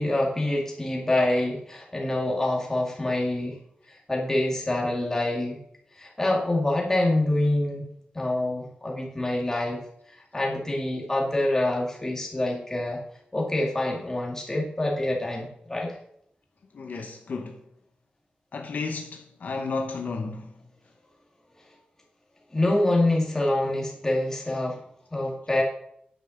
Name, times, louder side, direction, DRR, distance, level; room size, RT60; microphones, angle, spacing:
voice 1, 0.0-3.6 3.9-5.6 5.9-7.9 8.1-13.0 13.3-16.0 22.5-24.8 25.1-25.6, left 1 dB, 15° left, 2.2 m, -26 dB
voice 2, 16.7-17.6 18.5-20.5, left 4 dB, 60° left, 1.0 m, -33 dB
9.9 x 5.8 x 6.5 m
wide cardioid pair, 170°, 3 cm